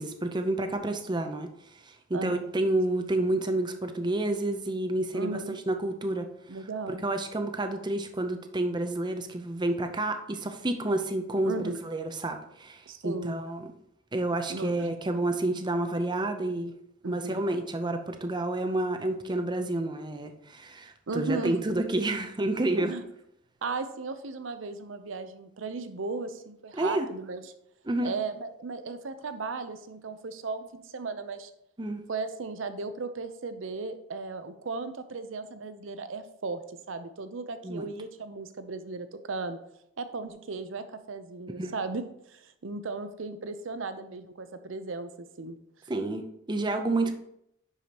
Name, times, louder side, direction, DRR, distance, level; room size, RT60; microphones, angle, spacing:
voice 1, 0.0-1.5 1.8-6.3 6.9-13.7 14.1-16.7 17.1-22.9 26.7-27.1 27.9-28.1 31.8-32.0 37.6-37.9 41.6-41.7 45.9-47.1, right 2 dB, 25° right, 6 dB, 0.6 m, -29 dB
voice 2, 2.1-2.5 5.1-5.5 6.5-7.0 11.4-11.8 12.9-13.4 14.5-14.9 17.0-17.4 21.1-21.6 22.8-23.0 23.6-27.4 28.0-31.5 32.1-39.6 40.0-42.0 42.3-45.6, right 3 dB, 85° right, 10 dB, 0.7 m, -36 dB
10.5 x 4.9 x 2.9 m, 0.77 s
head